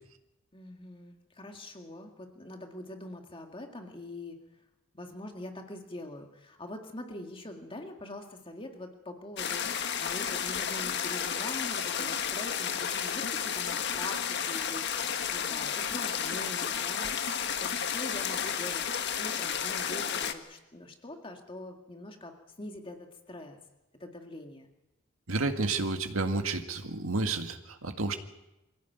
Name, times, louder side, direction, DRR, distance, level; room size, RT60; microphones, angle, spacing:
voice 1, 0.5-4.4 4.9-18.8 19.2-23.6 24.0-24.7, left 1 dB, 25° left, 4 dB, 2.0 m, -43 dB
sound 1, 9.4-20.3, left 7 dB, 55° left, 1.5 m, -32 dB
voice 2, 25.3-28.2, right 3 dB, 85° right, 6 dB, 2.0 m, -30 dB
23.5 x 16.0 x 9.4 m, 0.97 s
head